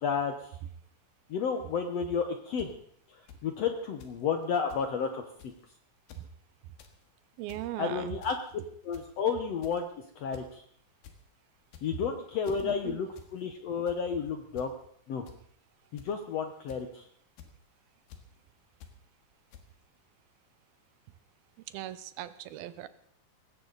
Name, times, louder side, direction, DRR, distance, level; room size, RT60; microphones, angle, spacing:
voice 1, 0.0-0.6 1.3-2.7 3.1-5.5 7.8-8.4 8.8-9.9 10.2-10.6 11.8-14.7 15.1-15.2 15.9-17.0, left 6 dB, 70° left, 6 dB, 1.6 m, -32 dB
sound 1, 2.6-2.7 3.3-3.4 4.0-4.2 4.4-4.5 4.7-4.9 5.4-5.6 6.0-6.3 6.6-6.9 7.3-7.7 8.2-8.5 8.9-9.2 9.6-9.9 10.3-10.5 10.8-11.2 11.6-12.1 12.4-12.6 13.1-13.3 13.6-14.0 14.6-14.7 15.3-15.4 16.0-16.2 16.7-17.0 17.4-17.5 18.1-18.2 18.8-18.9 19.5-19.6, left 8 dB, 85° left, 3.4 m, -50 dB
voice 2, 7.4-8.1 12.6-13.0 21.7-22.9, right 13 dB, 90° right, 13 dB, 2.7 m, -39 dB
19.5 x 16.0 x 4.0 m, 0.65 s
omnidirectional pair, 4.1 m